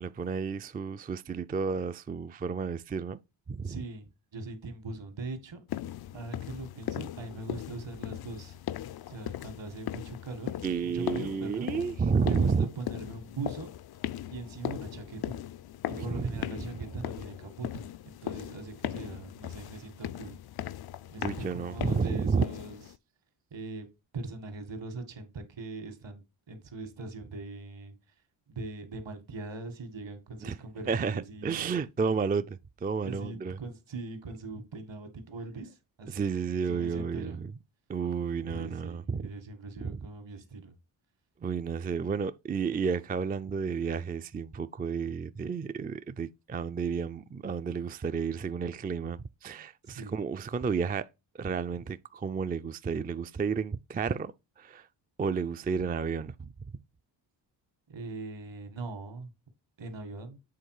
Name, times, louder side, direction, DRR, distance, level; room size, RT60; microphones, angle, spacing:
voice 1, 0.0-3.2 3.5-3.8 10.6-12.7 16.0-16.4 21.2-22.4 30.4-30.6 30.9-33.6 36.1-37.5 37.9-39.3 39.8-40.0 41.4-51.1 51.3-54.9 55.2-56.5, right 5 dB, 20° right, 0.4 m, -31 dB
voice 2, 3.6-5.6 6.1-8.6 9.1-10.5 10.8-11.7 12.3-13.7 14.3-15.4 15.9-20.4 21.1-22.8 23.5-23.9 24.1-27.9 28.5-31.8 33.0-36.2 36.6-37.4 38.5-40.7 49.9-50.2 57.9-59.3 59.8-60.4, right 3 dB, 65° right, 1.9 m, -41 dB
sound 1, 5.7-23.0, left 12 dB, 55° left, 0.5 m, -39 dB
7.9 x 3.7 x 4.8 m
cardioid pair, 60°, 47 cm